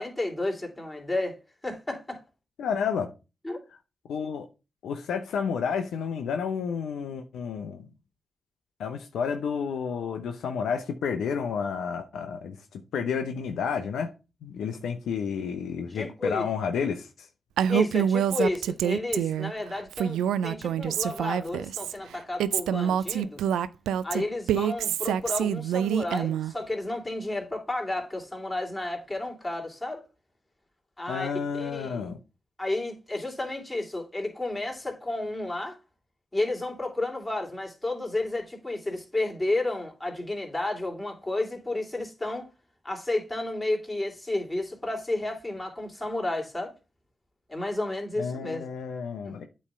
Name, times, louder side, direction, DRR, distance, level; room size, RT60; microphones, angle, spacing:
voice 1, 0.0-1.4 1.6-2.2 3.4-3.6 15.9-16.5 17.7-23.4 24.0-30.0 31.0-31.3 31.6-32.1 32.6-35.8 36.3-42.5 42.8-46.7 47.5-48.7 49.2-49.3, left 2 dB, 20° left, 3.0 m, -31 dB
voice 2, 2.6-3.1 4.1-4.5 4.8-7.9 8.8-14.1 14.4-17.1 31.1-32.2 48.2-49.5, left 6 dB, 80° left, 0.6 m, -30 dB
Female speech woman speaking, 17.6-19.5 19.9-21.9 22.4-26.5, right 9 dB, 85° right, 0.3 m, -26 dB
8.5 x 3.2 x 5.4 m
supercardioid pair, 40°, 0 cm